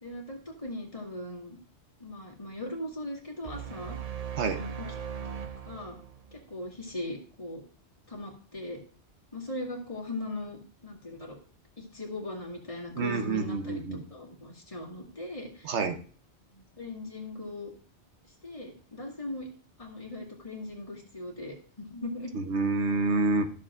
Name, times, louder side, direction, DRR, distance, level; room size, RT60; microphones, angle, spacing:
voice 1, 0.0-1.6 2.0-4.0 4.4-4.9 5.6-6.0 6.3-7.6 8.1-8.8 9.3-11.4 11.8-13.8 14.1-15.7 16.5-17.7 18.4-19.5 19.8-22.3, left 1 dB, 30° left, -2 dB, 2.0 m, -39 dB
sound 1, 3.4-6.8, right 8 dB, 45° right, 0.6 m, -39 dB
voice 2, 13.0-14.0 15.6-16.0 22.3-23.5, right 3 dB, 80° right, 7 dB, 1.2 m, -28 dB
13.0 x 6.7 x 2.5 m, 0.42 s
omnidirectional pair, 1.2 m